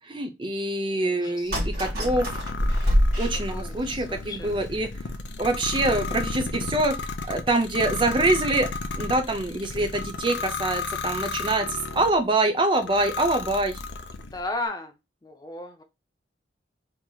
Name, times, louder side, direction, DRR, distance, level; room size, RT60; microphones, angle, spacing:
voice 1, 0.0-2.3 3.2-4.9 5.4-6.9 7.3-8.7 8.9-13.7, right 2 dB, 25° right, 6 dB, 0.6 m, -25 dB
voice 2, 1.0-1.5 3.5-4.6 10.2-10.5 14.3-14.9 15.2-15.8, left 2 dB, 20° left, 6 dB, 0.5 m, -35 dB
sound 1, 1.5-4.0 4.6-4.7 5.0-5.1 5.7-6.0 6.4-6.6, equal, 55° right, 2.3 m, -25 dB
sound 2, 1.9-12.2 12.7-14.4, left 4 dB, 75° left, 0.5 m, -33 dB
4.5 x 2.8 x 2.2 m, 0.23 s
head